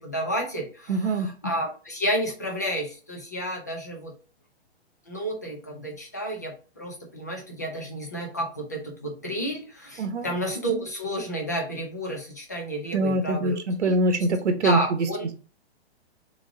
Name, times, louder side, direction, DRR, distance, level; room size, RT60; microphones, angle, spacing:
voice 1, 0.0-4.1 5.1-14.2 14.6-15.3, equal, 15° left, 1 dB, 0.3 m, -31 dB
voice 2, 0.9-1.3 10.0-10.3 12.9-15.1, right 2 dB, 85° right, 8 dB, 1.0 m, -24 dB
3.7 x 3.1 x 3.6 m, 0.37 s
hypercardioid pair, 165°, 34 cm